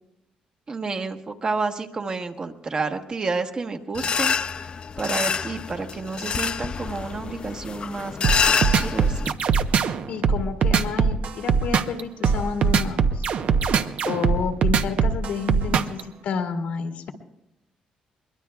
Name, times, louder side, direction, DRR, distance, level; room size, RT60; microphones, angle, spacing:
voice 1, 0.7-4.7 5.0-8.2 8.8-9.3 15.7-15.8, right 4 dB, 35° right, 5 dB, 1.2 m, -30 dB
sound 1, 3.9-9.3, left 6 dB, 40° left, 0.4 m, -27 dB
sound 2, 8.2-16.0, right 6 dB, 65° right, 0.8 m, -21 dB
voice 2, 10.1-13.2 14.1-17.1, left 6 dB, 75° left, 3 dB, 1.8 m, -30 dB
22.5 x 21.0 x 2.3 m, 0.91 s
cardioid pair, 95°, 2 cm